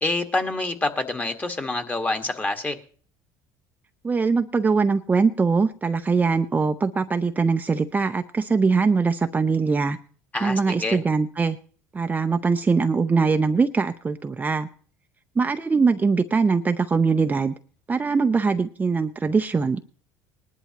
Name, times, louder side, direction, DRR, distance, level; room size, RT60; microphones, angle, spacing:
voice 1, 0.0-2.8 10.3-11.0, left 2 dB, 20° left, 5 dB, 1.7 m, -27 dB
voice 2, 4.0-10.0 10.4-11.6 11.9-14.7 15.4-17.6 17.9-19.8, right 4 dB, 20° right, 7 dB, 0.6 m, -22 dB
19.5 x 11.0 x 3.0 m, 0.43 s
supercardioid pair, 90°, 8 cm